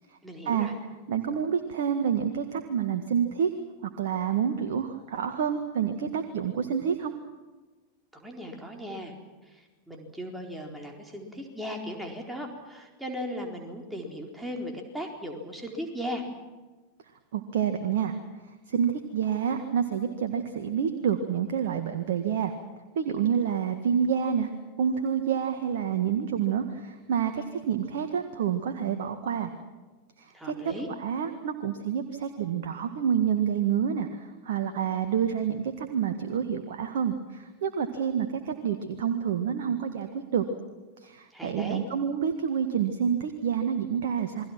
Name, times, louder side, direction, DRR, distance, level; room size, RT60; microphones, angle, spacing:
voice 1, 0.2-0.7 8.1-9.1 9.5-16.2 30.3-30.9 41.3-41.8, equal, 5° right, 1 dB, 4.4 m, -37 dB
voice 2, 1.1-3.5 3.8-7.1 17.3-18.1 18.7-22.5 23.0-24.5 24.8-29.5 30.2-30.5 31.0-40.5 41.0-44.4, right 8 dB, 55° right, 7 dB, 1.8 m, -28 dB
29.0 x 22.0 x 6.0 m, 1.3 s
figure-of-eight pair, 90°, 0 cm